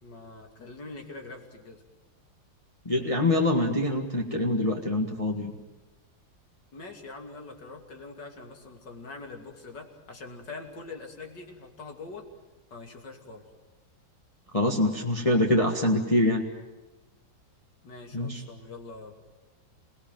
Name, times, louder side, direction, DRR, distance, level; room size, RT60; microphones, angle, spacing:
voice 1, 0.0-1.8 6.7-12.3 12.7-13.4 17.8-19.1, left 3 dB, 65° left, 3 dB, 3.3 m, -43 dB
voice 2, 2.9-5.5 14.5-16.4 18.1-18.4, left 1 dB, 20° left, 0 dB, 1.7 m, -25 dB
27.5 x 18.5 x 9.3 m, 1.1 s
omnidirectional pair, 2.1 m